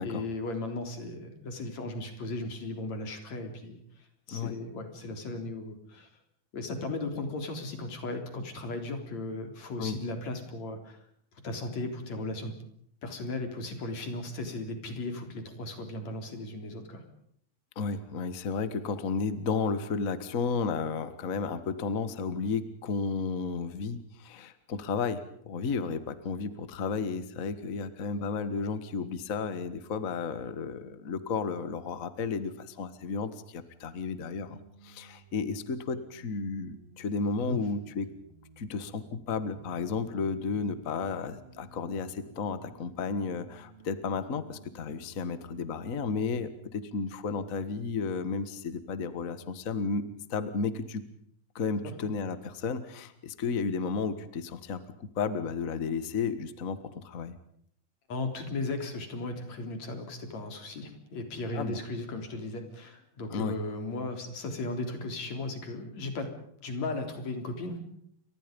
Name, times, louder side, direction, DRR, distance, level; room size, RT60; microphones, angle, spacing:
voice 1, 0.0-3.8 4.3-6.1 6.5-11.0 11.4-12.5 13.0-17.0 37.4-37.6 51.8-51.9 58.1-66.3 66.6-67.8, left 2 dB, 50° left, 6 dB, 4.8 m, -36 dB
voice 2, 17.7-38.1 38.6-51.0 51.5-57.4 61.5-61.8 63.3-63.6, left 5 dB, 70° left, 12 dB, 0.7 m, -33 dB
sound 1, 34.3-46.5, right 3 dB, 75° right, 5.8 m, -56 dB
29.5 x 25.0 x 5.3 m, 0.66 s
omnidirectional pair, 4.3 m